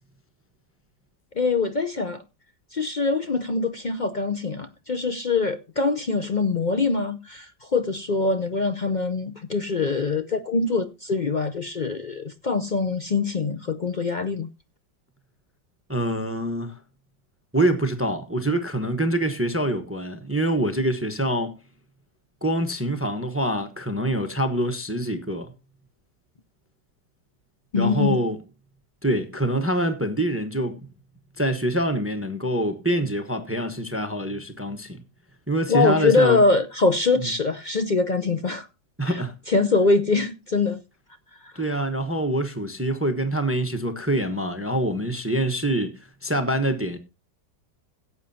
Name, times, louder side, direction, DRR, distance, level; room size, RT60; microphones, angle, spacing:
voice 1, 1.4-2.2 2.7-14.5 27.7-28.2 35.7-38.7 39.1-39.2 39.5-40.8 41.4-41.6, left 4 dB, 65° left, 0.4 m, -23 dB
voice 2, 15.9-16.8 17.5-21.5 22.4-25.5 27.8-28.4 29.0-30.9 31.4-35.0 35.5-36.4 39.0-39.4 41.5-47.0, right 1 dB, 10° right, 0.8 m, -25 dB
17.0 x 8.4 x 2.7 m
omnidirectional pair, 1.9 m